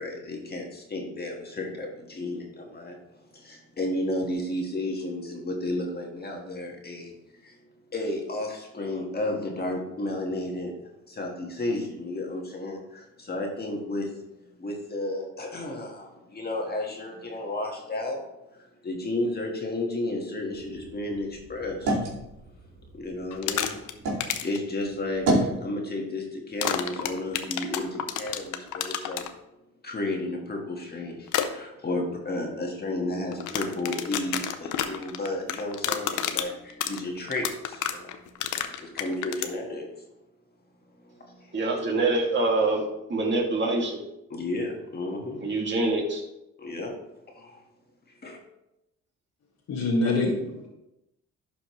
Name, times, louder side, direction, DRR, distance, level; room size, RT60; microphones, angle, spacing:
voice 1, 0.0-7.1 7.4-7.6 7.9-10.7 11.1-14.1 14.6-18.2 18.8-22.0 22.9-23.8 24.4-29.3 29.8-38.3 38.7-39.9 41.0-41.6 44.3-45.5 46.6-46.9 47.3-47.6 48.2-48.4, left 2 dB, 30° left, 0 dB, 1.6 m, -32 dB
sound 1, 20.5-24.3 24.7-25.6, right 1 dB, 80° right, 2.7 m, -30 dB
sound 2, 23.3-23.9 24.2-24.6 26.6-29.3 31.3-31.5 33.3-39.5, left 10 dB, 85° left, 0.7 m, -29 dB
voice 2, 41.5-42.8 43.1-44.0 45.4-46.2, right 2 dB, 40° right, -2 dB, 2.3 m, -25 dB
voice 3, 49.7-50.7, left 2 dB, 60° left, -3 dB, 1.6 m, -25 dB
11.0 x 5.1 x 3.1 m, 0.90 s
cardioid pair, 90°, 30 cm